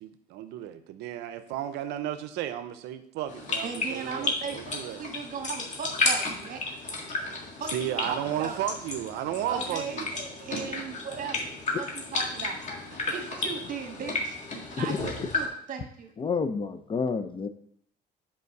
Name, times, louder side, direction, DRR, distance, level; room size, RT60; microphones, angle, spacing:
voice 1, 0.0-5.0 7.6-10.1 13.1-13.2, right 11 dB, 90° right, 10 dB, 0.5 m, -34 dB
sound 1, 3.3-15.5, left 3 dB, 45° left, 1.8 m, -33 dB
voice 2, 3.6-6.6 7.6-8.6 9.5-12.6 13.1-14.4 14.7-16.1, right 6 dB, 50° right, 4 dB, 1.6 m, -37 dB
voice 3, 16.2-17.5, left 5 dB, 30° left, 10 dB, 0.6 m, -29 dB
5.5 x 5.1 x 6.5 m, 0.65 s
cardioid pair, 110°, 17 cm